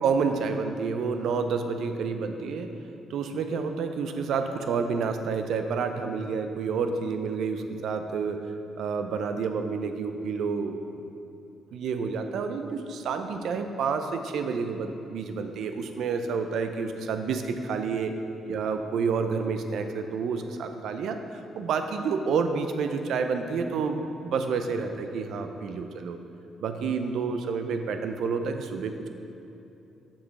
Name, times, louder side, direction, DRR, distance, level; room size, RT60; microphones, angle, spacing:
voice 1, 0.0-2.7 3.1-8.4 8.8-10.8 11.7-18.1 18.5-26.2 26.6-29.1, right 5 dB, 75° right, 7 dB, 0.5 m, -29 dB
7.0 x 5.2 x 4.7 m, 2.9 s
cardioid pair, 85°, 0 cm